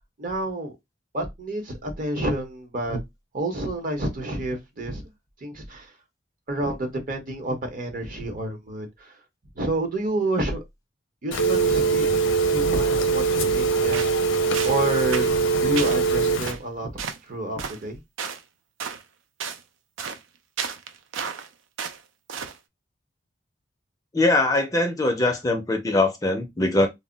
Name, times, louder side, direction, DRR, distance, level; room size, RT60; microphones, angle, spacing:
voice 1, 0.2-0.7 1.1-3.0 3.3-5.0 5.4-5.9 6.5-9.1 9.6-10.6 11.2-12.0 12.5-14.0 14.6-15.3 15.6-16.9 17.3-18.0, right 1 dB, 45° right, 0.8 m, -29 dB
Telephone, 11.3-16.5, right 4 dB, 85° left, 0.5 m, -22 dB
sound 1, 13.9-14.2 14.5-14.8 15.1-15.3 15.8-16.0 16.4-16.6 17.0-17.2 17.6-17.8 18.2-18.4 18.8-19.0 19.4-19.6 20.0-20.2 20.6-21.5 21.8-22.0 22.3-22.6, right 7 dB, 85° right, 0.4 m, -32 dB
voice 2, 24.1-26.9, left 2 dB, 20° left, 0.4 m, -22 dB
2.1 x 2.0 x 3.7 m
head